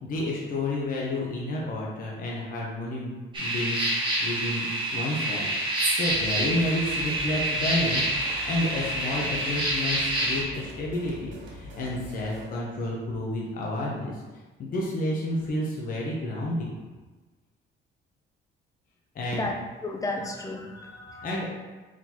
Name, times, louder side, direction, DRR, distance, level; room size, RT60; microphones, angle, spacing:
voice 1, 0.0-5.5 5.9-8.1 8.4-14.2 14.6-16.8 19.1-19.4 21.2-21.5, left 1 dB, 45° left, -4 dB, 0.8 m, -30 dB
sound 1, 3.3-10.4, right 1 dB, 25° right, 1.3 m, -27 dB
sound 2, 6.0-12.6, equal, 65° right, 1.0 m, -44 dB
voice 2, 19.3-21.5, left 2 dB, 15° left, 2 dB, 0.5 m, -33 dB
4.8 x 3.9 x 2.8 m, 1.3 s
cardioid pair, 150°, 20 cm